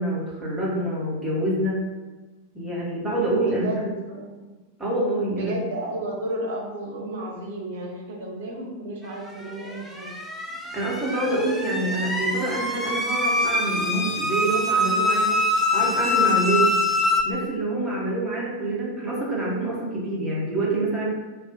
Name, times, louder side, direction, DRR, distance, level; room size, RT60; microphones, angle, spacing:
voice 1, 0.0-1.8 2.5-3.9 4.8-5.5 10.7-15.4 15.7-16.8 17.2-21.2, right 2 dB, 10° right, -6 dB, 0.8 m, -26 dB
voice 2, 3.5-3.8 4.1-4.3 5.4-10.1, right 1 dB, 60° right, -1 dB, 0.6 m, -32 dB
sound 1, 9.6-17.2, left 2 dB, 5° left, 0.3 m, -24 dB
2.2 x 2.1 x 2.7 m, 1.3 s
figure-of-eight pair, 90°, 0 cm